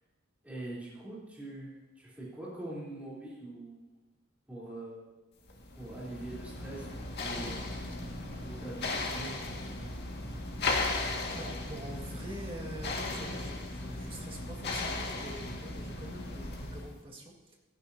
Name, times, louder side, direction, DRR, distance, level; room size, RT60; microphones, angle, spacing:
voice 1, 0.4-4.0 4.5-5.2 5.8-6.8 7.1-7.7 8.3-9.4, right 2 dB, 5° right, -8 dB, 3.7 m, -43 dB
sound 1, 5.5-17.0, left 2 dB, 55° left, 2.0 m, -36 dB
voice 2, 10.9-17.6, right 1 dB, 25° right, -1 dB, 2.0 m, -46 dB
16.0 x 15.0 x 2.9 m, 1.1 s
head